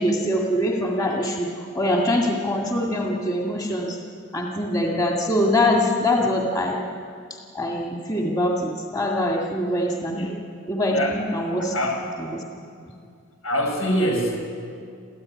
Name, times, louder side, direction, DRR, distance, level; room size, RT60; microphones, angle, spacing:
voice 1, 0.0-4.0 4.3-6.8 7.5-10.3 10.7-11.7 12.2-12.4, left 1 dB, 20° left, -1 dB, 2.0 m, -23 dB
voice 2, 10.9-11.2 11.6-12.0 13.4-14.4, equal, 75° left, 1 dB, 5.8 m, -24 dB
28.5 x 14.0 x 9.7 m, 2.3 s
head